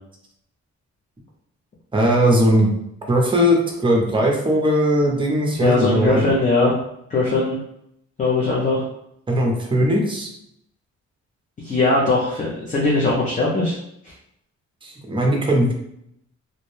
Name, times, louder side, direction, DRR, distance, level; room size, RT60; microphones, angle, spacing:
voice 1, 1.9-2.7 3.1-6.2 9.3-10.3 14.8-15.7, equal, 15° right, 0 dB, 0.6 m, -19 dB
voice 2, 5.6-6.7 7.1-7.6 8.2-8.8 11.6-13.8 14.0-14.1, left 3 dB, 25° left, -4 dB, 0.5 m, -20 dB
2.6 x 2.1 x 3.1 m, 0.75 s
wide cardioid pair, 135°, 29 cm